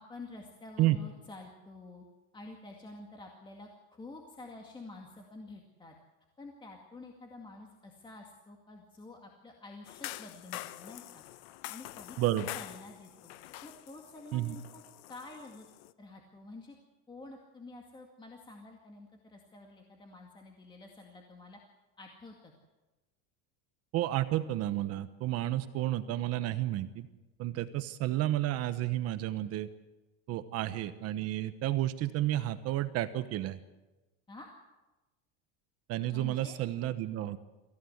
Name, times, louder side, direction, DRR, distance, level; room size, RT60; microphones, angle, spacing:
voice 1, 0.0-2.0 2.3-6.0 6.4-11.2 11.7-12.2 12.5-14.8 15.1-15.7 16.0-16.8 17.1-21.6 22.0-22.5 34.3-34.5 36.1-36.6, left 2 dB, 15° left, 1 dB, 2.1 m, -49 dB
sound 1, 9.9-15.9, left 15 dB, 70° left, 1.0 m, -46 dB
voice 2, 12.2-12.5 14.3-14.6 23.9-27.1 27.4-29.7 30.3-33.6 35.9-37.4, right 14 dB, 45° right, 11 dB, 1.0 m, -31 dB
25.5 x 15.5 x 8.0 m, 1.1 s
cardioid pair, 150°, 34 cm